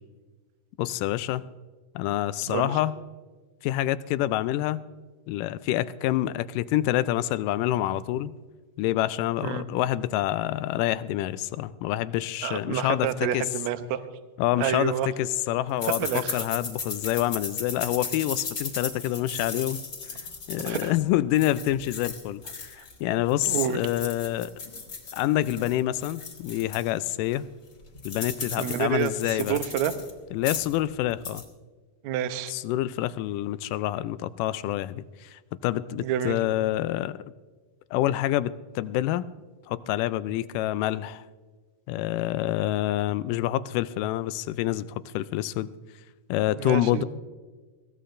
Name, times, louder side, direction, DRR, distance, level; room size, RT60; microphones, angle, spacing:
voice 1, 0.8-1.4 2.0-3.0 3.6-4.8 5.3-8.3 8.8-13.5 14.4-14.9 15.2-19.8 20.5-24.5 25.1-27.5 28.1-29.6 30.3-31.4 32.5-37.2 37.9-39.2 39.7-41.2 41.9-45.7 46.3-47.1, left 14 dB, 80° left, 15 dB, 2.1 m, -27 dB
voice 2, 12.4-14.0 14.6-15.1 16.0-16.4 20.6-20.9 23.5-23.8 28.6-29.9 32.0-32.5 36.0-36.4 46.6-47.0, right 10 dB, 70° right, 10 dB, 1.9 m, -28 dB
sound 1, 15.8-23.0 23.3-26.9 27.3-27.4 27.7-30.1 30.4-30.8 31.1-31.4, left 4 dB, 40° left, 1.8 m, -36 dB
21.5 x 16.5 x 2.6 m, 1.3 s
omnidirectional pair, 3.9 m